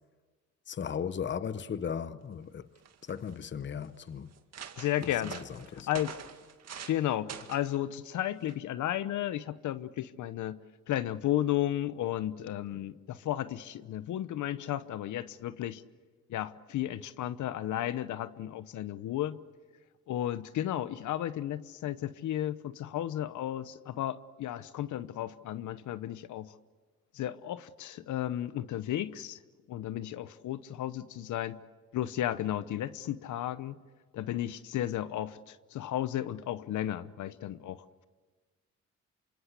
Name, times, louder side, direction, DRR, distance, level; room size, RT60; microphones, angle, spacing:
voice 1, 0.7-2.7 3.0-4.3 5.0-5.9, left 7 dB, 40° left, 0.9 m, -37 dB
sound 1, 2.4-2.5 2.8-3.3 3.9-4.0 4.3-7.0 7.3-7.7 8.5-8.7, right 8 dB, 60° right, 2.1 m, -45 dB
voice 2, 4.8-5.4 5.7-6.2 6.9-15.8 16.3-19.4 20.1-26.5 27.1-29.4 29.7-31.6 31.9-33.8 34.1-38.0, left 12 dB, 75° left, 1.0 m, -34 dB
27.5 x 25.5 x 8.2 m
cardioid pair, 90°, 30 cm